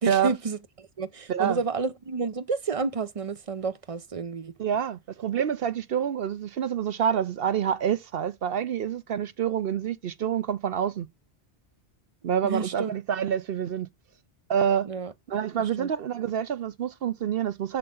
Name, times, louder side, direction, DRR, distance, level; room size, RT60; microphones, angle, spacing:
voice 1, 0.0-4.5 12.4-12.9 14.8-15.1 15.6-15.9, right 4 dB, 35° right, 0.7 m, -30 dB
voice 2, 1.3-1.6 4.6-11.1 12.2-13.9 14.5-14.9 15.3-17.8, right 8 dB, 65° right, 0.8 m, -27 dB
7.8 x 6.7 x 3.7 m
omnidirectional pair, 1.1 m